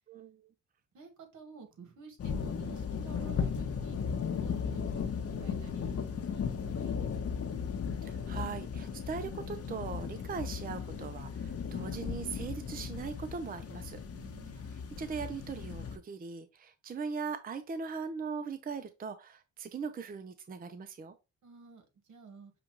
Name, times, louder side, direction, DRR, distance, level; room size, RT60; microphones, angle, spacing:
voice 1, 0.1-0.5 8.0-14.0 15.0-21.1, right 5 dB, 30° right, 0.5 m, -40 dB
voice 2, 0.9-7.5 14.1-14.8 21.4-22.5, right 5 dB, 70° right, 1.5 m, -52 dB
sound 1, 2.2-16.0, left 6 dB, 50° left, 0.9 m, -36 dB
6.7 x 2.4 x 2.9 m
cardioid pair, 70°, 31 cm